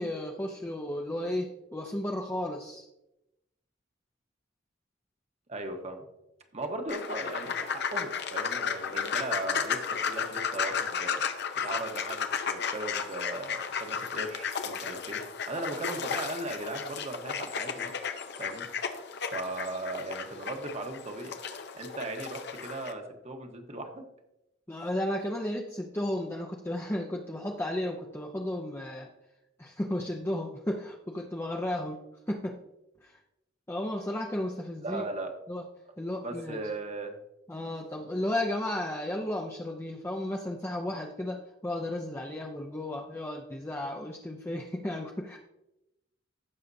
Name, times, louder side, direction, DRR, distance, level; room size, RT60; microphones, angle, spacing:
voice 1, 0.0-2.9 24.7-29.1 29.6-32.6 33.0-33.2 33.7-35.0 35.5-35.6 36.0-36.7 37.5-45.4, left 1 dB, 15° left, 0 dB, 0.6 m, -34 dB
voice 2, 5.5-6.1 6.5-11.2 11.6-15.2 15.5-17.9 18.4-18.7 19.3-21.3 21.7-24.0 34.8-35.3 36.2-37.2, right 2 dB, 35° right, 4 dB, 1.2 m, -37 dB
sound 1, 6.9-22.9, left 6 dB, 60° left, 0.8 m, -34 dB
15.5 x 6.6 x 2.7 m, 0.91 s
head